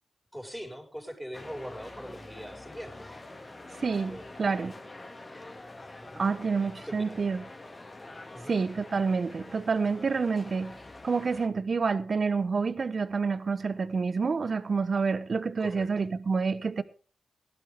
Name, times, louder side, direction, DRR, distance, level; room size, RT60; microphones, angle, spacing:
voice 1, 0.3-3.1 4.0-4.7 6.0-6.3 6.9-7.0 8.3-8.6 15.6-16.1, equal, ahead, 5.4 m, -42 dB
sound 1, 1.3-11.5, left 2 dB, 35° left, 2.3 m, -46 dB
voice 2, 3.8-4.7 6.2-7.4 8.5-10.8 11.0-16.8, right 5 dB, 60° right, 1.0 m, -28 dB
17.0 x 12.0 x 3.6 m
cardioid pair, 50°, 0 cm